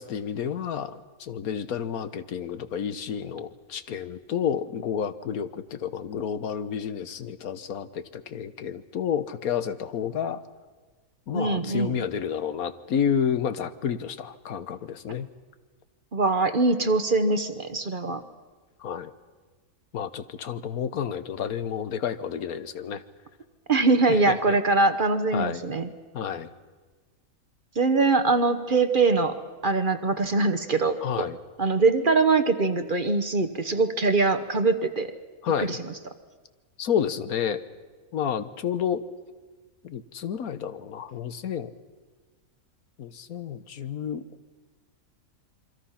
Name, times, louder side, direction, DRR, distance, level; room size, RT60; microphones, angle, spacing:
voice 1, 0.0-10.4 11.3-15.3 18.8-19.1 19.9-23.0 24.1-24.6 25.3-25.6 26.1-26.5 31.0-31.4 35.4-35.8 36.8-37.6 38.1-39.0 39.8-41.7 43.0-44.2, left 8 dB, 80° left, 12 dB, 1.4 m, -30 dB
voice 2, 11.3-12.0 16.1-18.2 23.7-25.9 27.8-31.3 31.6-35.1 35.6-35.8, right 3 dB, 40° right, 10 dB, 1.1 m, -23 dB
27.0 x 24.0 x 5.7 m, 1.4 s
omnidirectional pair, 1.5 m